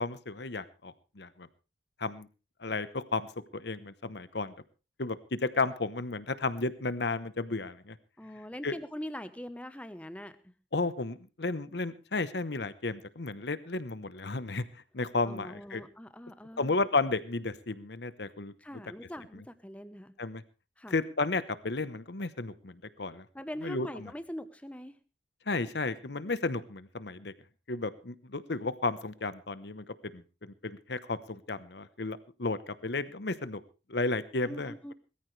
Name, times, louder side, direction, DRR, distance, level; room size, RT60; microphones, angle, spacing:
voice 1, 0.0-1.5 2.0-2.3 2.6-4.5 5.0-8.0 8.6-8.7 10.7-14.6 14.9-15.8 16.6-18.5 20.2-20.4 20.9-23.2 23.6-24.1 25.5-27.3 27.7-29.8 30.1-30.2 30.6-33.6 33.9-34.7, left 3 dB, 70° left, 14 dB, 1.0 m, -33 dB
voice 2, 8.2-10.3 15.2-16.8 18.6-20.1 20.8-21.0 23.3-25.0 34.4-34.9, equal, 5° left, 11 dB, 0.9 m, -42 dB
20.5 x 14.0 x 3.3 m, 0.32 s
head